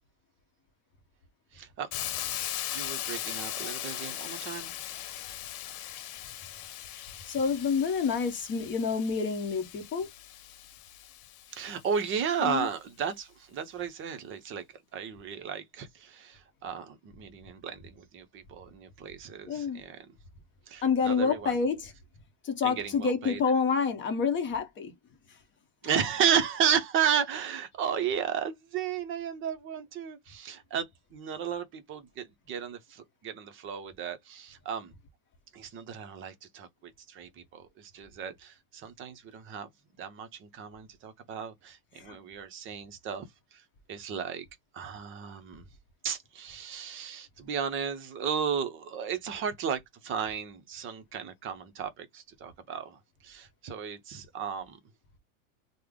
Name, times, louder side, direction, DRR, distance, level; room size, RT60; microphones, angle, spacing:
voice 1, 1.5-1.9 2.7-4.7 11.5-14.6 14.9-20.1 20.7-21.5 22.6-23.4 25.8-34.9 35.5-39.7 40.0-43.3 43.5-43.6 43.9-44.5 44.7-45.6 46.0-54.8, right 7 dB, 30° right, 0.6 m, -34 dB
Hiss, 1.9-11.8, left 12 dB, 75° left, 0.9 m, -39 dB
voice 2, 7.3-10.1 12.4-12.7 19.5-19.8 20.8-21.9 22.4-24.9 42.0-42.2, left 5 dB, 25° left, 0.9 m, -28 dB
3.2 x 2.1 x 3.6 m
supercardioid pair, 130°, 44 cm